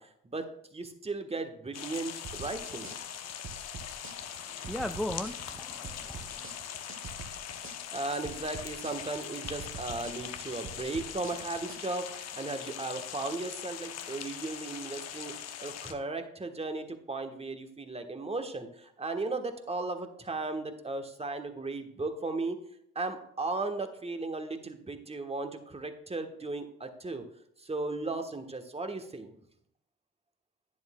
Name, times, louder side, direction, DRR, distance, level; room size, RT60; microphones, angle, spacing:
voice 1, 0.0-2.9 7.9-22.6 22.9-27.2 27.6-29.3, right 3 dB, 20° right, 6 dB, 1.3 m, -36 dB
sound 1, 1.7-15.9, left 9 dB, 55° left, 0.9 m, -41 dB
sound 2, 2.2-11.8, right 5 dB, 40° right, 1.1 m, -46 dB
voice 2, 4.5-6.5, left 1 dB, ahead, 9 dB, 0.3 m, -37 dB
10.5 x 10.0 x 2.3 m, 0.71 s
hypercardioid pair, 45°, 31 cm